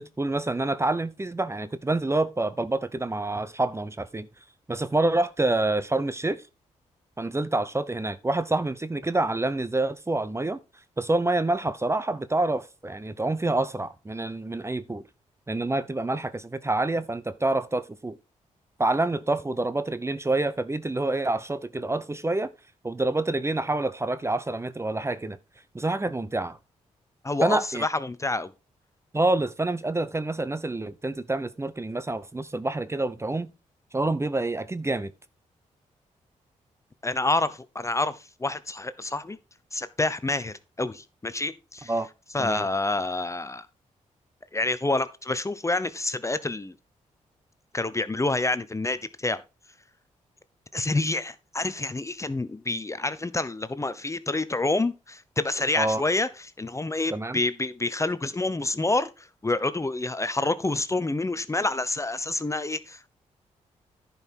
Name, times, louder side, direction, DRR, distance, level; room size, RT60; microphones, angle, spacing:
voice 1, 0.0-4.3 4.7-6.4 7.2-10.6 11.0-15.0 15.5-18.2 18.8-22.5 22.8-25.4 25.7-26.6 27.4-27.8 29.1-33.5 33.9-35.1 41.9-42.1 42.4-42.6 55.8-56.0 57.1-57.4, right 2 dB, 20° right, 0.9 m, -27 dB
voice 2, 27.2-28.5 37.0-39.4 39.7-41.9 42.3-43.7 44.5-46.7 47.7-49.4 50.7-56.3 56.6-63.1, left 2 dB, 20° left, 0.9 m, -28 dB
10.5 x 5.6 x 4.6 m
cardioid pair, 60°, 14 cm